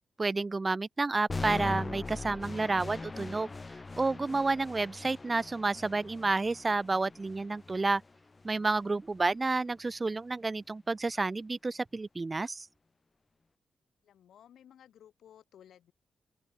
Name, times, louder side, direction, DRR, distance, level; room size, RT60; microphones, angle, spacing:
voice 1, 0.2-3.5 4.0-8.0 8.4-12.7, right 3 dB, 30° right, 0.5 m, -30 dB
sound 1, 1.3-9.3, left 3 dB, 30° left, 0.4 m, -41 dB
voice 2, 14.0-15.9, left 10 dB, 85° left, 4.7 m, -57 dB
open air
cardioid pair, 70°, 0 cm